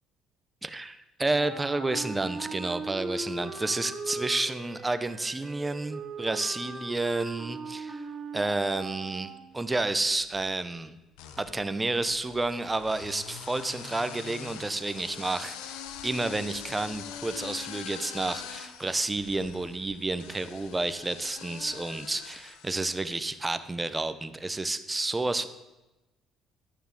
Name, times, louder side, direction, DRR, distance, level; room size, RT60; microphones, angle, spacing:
voice 1, 0.6-8.0 8.3-11.0 11.4-15.8 16.0-25.5, right 2 dB, 15° right, 11 dB, 1.0 m, -30 dB
Wind instrument woodwind instrument, 1.3-9.6, right 3 dB, 40° right, 1.8 m, -39 dB
sound 1, 9.9-10.4 11.1-23.4, left 9 dB, 85° left, 0.9 m, -44 dB
11.5 x 6.9 x 7.6 m, 1.0 s
supercardioid pair, 75°, 0 cm